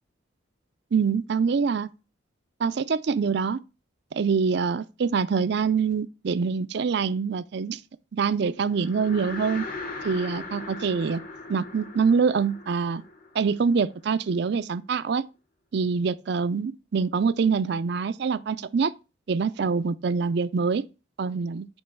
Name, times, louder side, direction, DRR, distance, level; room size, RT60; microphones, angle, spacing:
voice 1, 0.9-1.9 2.6-3.6 4.1-7.8 8.1-9.6 10.0-11.2 11.5-13.0 13.3-15.2 15.7-18.9 19.3-20.8 21.2-21.7, right 5 dB, 55° right, 0.4 m, -25 dB
sound 1, 8.7-14.1, left 3 dB, 45° left, 1.0 m, -39 dB
5.3 x 3.8 x 5.9 m
head